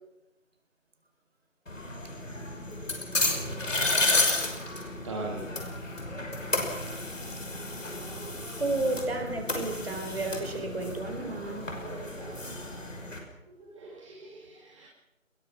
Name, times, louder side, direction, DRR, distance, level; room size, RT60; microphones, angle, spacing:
sound 1, 1.7-13.2, left 2 dB, 65° left, 5.9 m, -32 dB
voice 1, 5.0-5.6 7.9-8.4 11.8-12.4 13.6-14.9, right 2 dB, 20° right, -3 dB, 2.6 m, -41 dB
voice 2, 8.6-11.8, right 2 dB, 45° right, 5 dB, 4.5 m, -32 dB
23.0 x 21.5 x 6.0 m, 0.96 s
figure-of-eight pair, 160°, 41 cm